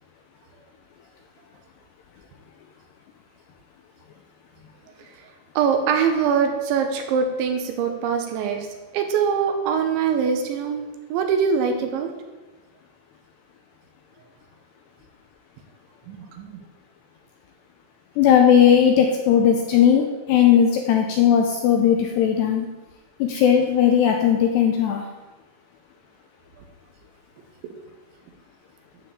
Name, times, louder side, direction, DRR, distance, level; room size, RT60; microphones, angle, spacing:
voice 1, 5.6-8.7 8.9-12.1 16.1-16.6 27.6-27.7, right 6 dB, 75° right, 5 dB, 3.1 m, -23 dB
voice 2, 18.2-22.7 23.2-25.0, left 8 dB, 75° left, 3 dB, 2.5 m, -17 dB
12.5 x 4.9 x 8.2 m, 1.2 s
omnidirectional pair, 5.7 m